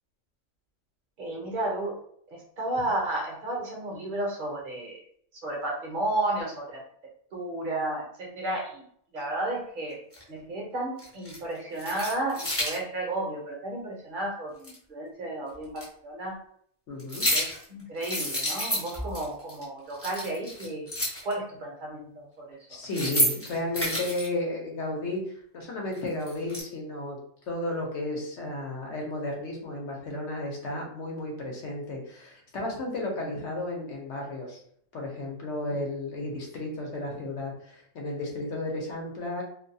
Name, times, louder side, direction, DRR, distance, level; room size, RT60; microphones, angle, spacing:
voice 1, 1.2-2.0 2.3-5.0 5.4-6.8 7.3-8.8 9.1-10.0 10.3-16.4 17.3-20.9 21.2-22.6 35.7-35.8, right 2 dB, 50° right, -1 dB, 0.8 m, -32 dB
sound 1, 10.1-10.2 11.0-11.4 11.7-12.8 14.6-14.7 15.8-15.9 17.0-17.6 18.0-19.2 19.5-19.6 19.9-21.3 22.7-24.3 25.9-26.6, left 1 dB, 15° left, 0.6 m, -29 dB
voice 2, 16.9-17.3 22.7-27.2 27.5-34.6 34.9-39.4, left 2 dB, 70° left, -1 dB, 1.0 m, -33 dB
2.5 x 2.2 x 2.6 m, 0.65 s
omnidirectional pair, 1.3 m